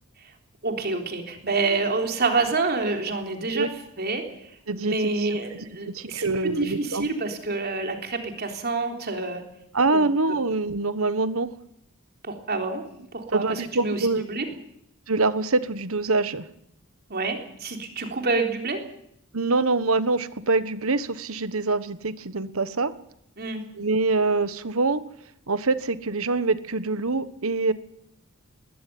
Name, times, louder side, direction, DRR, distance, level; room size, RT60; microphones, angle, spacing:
voice 1, 0.6-3.7 4.0-9.4 9.9-10.0 12.2-12.8 13.1-14.5 17.1-18.8 23.4-23.6, right 3 dB, 50° right, 4 dB, 3.6 m, -28 dB
voice 2, 4.7-5.1 5.8-7.1 9.7-11.5 13.3-14.3 15.1-16.5 19.3-22.9 23.8-25.0 25.5-27.7, right 3 dB, 70° right, 13 dB, 1.4 m, -24 dB
21.5 x 15.0 x 9.4 m, 0.75 s
head